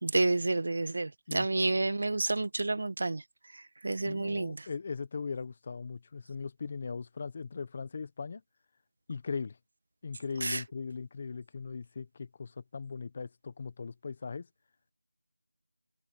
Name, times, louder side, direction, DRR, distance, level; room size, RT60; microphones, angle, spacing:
voice 1, 0.0-3.2 3.8-4.7 10.4-10.6, right 2 dB, 55° right, 1.3 m, -29 dB
voice 2, 4.0-8.4 9.1-9.6 10.0-14.5, left 5 dB, 30° left, 1.3 m, -39 dB
figure-of-eight pair, 170°, 0 cm